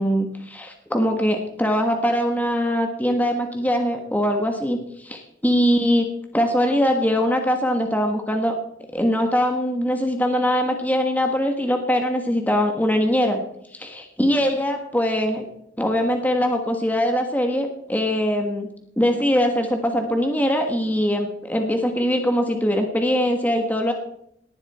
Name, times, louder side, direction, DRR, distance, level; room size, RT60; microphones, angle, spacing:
voice 1, 0.0-8.6 8.9-13.4 13.7-15.5 15.8-18.7 19.0-23.9, equal, 10° left, 4 dB, 1.5 m, -22 dB
18.0 x 11.0 x 4.3 m, 0.73 s
head